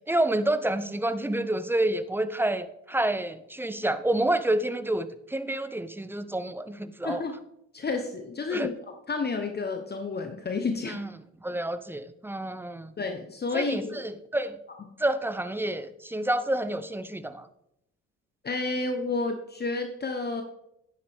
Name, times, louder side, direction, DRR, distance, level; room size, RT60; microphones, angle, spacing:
voice 1, 0.1-7.2 8.5-8.7 10.9-11.1 11.4-12.9 13.5-14.6 15.0-17.5, right 1 dB, 5° right, 13 dB, 0.6 m, -28 dB
voice 2, 7.0-7.3 7.7-8.7 9.1-11.0 13.0-14.0 18.4-20.4, left 3 dB, 35° left, 5 dB, 1.0 m, -30 dB
10.5 x 8.7 x 3.6 m, 0.79 s
cardioid pair, 90°, 30 cm